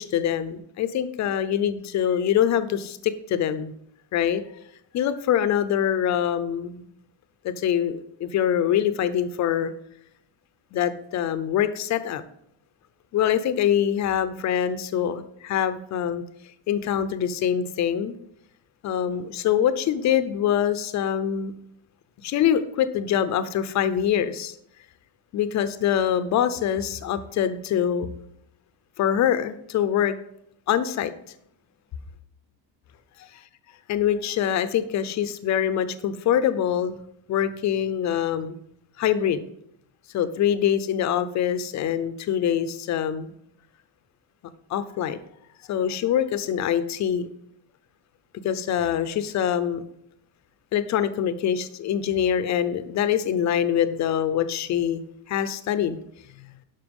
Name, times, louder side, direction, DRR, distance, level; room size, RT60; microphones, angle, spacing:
voice 1, 0.0-3.7 4.1-4.4 4.9-6.8 7.4-9.7 10.7-12.2 13.1-16.2 16.7-18.2 18.8-21.5 22.2-24.5 25.3-28.1 29.0-30.1 30.7-31.1 33.9-37.0 37.3-38.6 39.0-39.5 40.1-43.3 44.7-45.2 45.7-47.3 48.4-49.8 50.7-55.0 55.3-56.0 56.4-56.5, left 9 dB, 35° left, 13 dB, 0.6 m, -24 dB
12.0 x 5.6 x 5.3 m, 0.74 s
cardioid pair, 180°, 47 cm